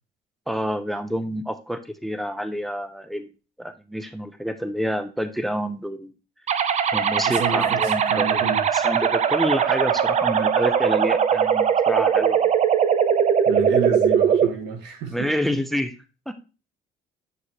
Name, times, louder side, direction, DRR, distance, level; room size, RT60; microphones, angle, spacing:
voice 1, 0.5-3.3 3.6-6.1 6.9-8.4 8.7-12.6 15.1-15.9 16.3-16.4, equal, ahead, 0.6 m, -28 dB
sound 1, 6.5-14.5, right 7 dB, 45° right, 0.5 m, -20 dB
voice 2, 7.3-8.7 13.5-15.3, right 6 dB, 85° right, 1.7 m, -30 dB
8.0 x 4.7 x 2.9 m
cardioid pair, 110°, 17 cm